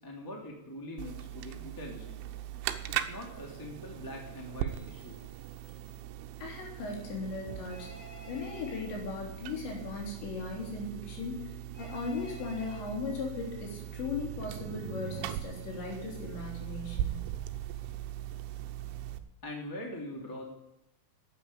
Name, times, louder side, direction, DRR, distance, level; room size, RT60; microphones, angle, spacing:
voice 1, 0.0-2.2 2.9-5.2 19.4-20.5, left 1 dB, 10° left, 0 dB, 1.4 m, -43 dB
sound 1, 1.0-19.2, right 12 dB, 90° right, 3.2 m, -40 dB
voice 2, 6.4-7.9 8.3-17.2, left 4 dB, 65° left, -1 dB, 5.6 m, -38 dB
Telephone, 7.7-8.8 11.7-12.8, left 1 dB, 35° left, 4.6 m, -50 dB
12.0 x 9.3 x 9.0 m, 0.88 s
omnidirectional pair, 5.6 m